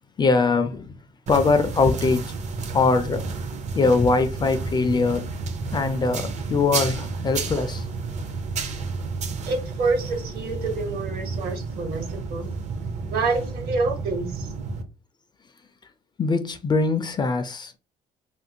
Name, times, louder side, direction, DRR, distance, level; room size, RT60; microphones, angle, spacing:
voice 1, 0.2-0.9 1.3-2.3 2.7-3.2 3.7-5.2 5.7-7.9 16.2-17.8, left 4 dB, 25° left, 0.3 m, -22 dB
sound 1, 1.3-14.8, right 4 dB, 45° right, 0.5 m, -31 dB
voice 2, 9.4-12.5 13.1-14.5, right 3 dB, 65° right, 1.1 m, -27 dB
2.8 x 2.5 x 2.7 m
cardioid pair, 110°, 17 cm